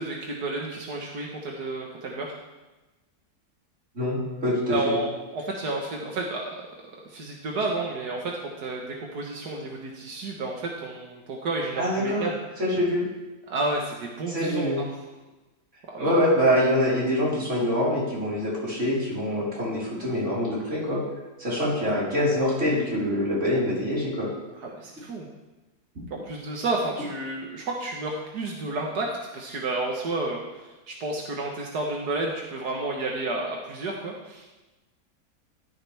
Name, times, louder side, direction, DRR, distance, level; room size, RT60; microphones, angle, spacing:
voice 1, 0.0-2.3 4.7-6.6 7.0-12.4 13.5-15.1 15.9-16.2 16.4-16.5 24.6-25.3 26.1-29.1 29.3-34.5, right 2 dB, 85° right, -1 dB, 2.0 m, -31 dB
voice 2, 4.0-4.9 11.8-12.2 12.6-13.0 14.3-14.8 16.0-21.0 21.4-24.3, left 1 dB, 50° right, -7 dB, 4.8 m, -25 dB
14.5 x 13.5 x 3.5 m, 1.1 s
omnidirectional pair, 1.7 m